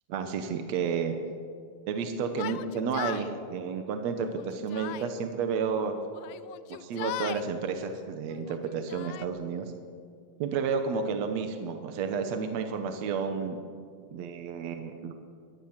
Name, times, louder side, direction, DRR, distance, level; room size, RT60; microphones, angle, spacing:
voice 1, 0.1-1.2 1.9-5.9 6.7-9.7 10.4-13.6 14.1-15.1, right 5 dB, 60° right, 6 dB, 2.1 m, -31 dB
Yell, 2.3-3.3 4.2-5.1 6.1-7.5 8.3-9.3, left 14 dB, 85° left, 2.4 m, -38 dB
21.5 x 18.5 x 7.4 m, 2.3 s
omnidirectional pair, 3.8 m